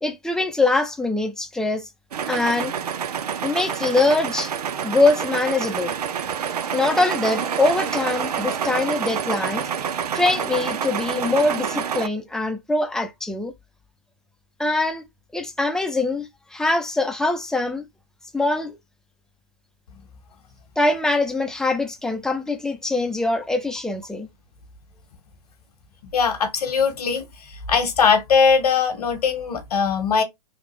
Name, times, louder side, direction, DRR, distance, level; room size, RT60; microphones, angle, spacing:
voice 1, 0.0-1.9 2.3-2.7 3.4-4.5 4.8-5.9 6.7-13.5 14.6-15.0 15.3-17.8 18.3-18.8 20.8-24.3, left 2 dB, 5° left, 0.6 m, -23 dB
sound 1, 2.1-12.1, right 7 dB, 85° right, 0.5 m, -27 dB
voice 2, 26.1-27.2 27.7-30.2, left 6 dB, 75° left, 1.2 m, -20 dB
3.4 x 2.4 x 3.2 m
hypercardioid pair, 115°, 19 cm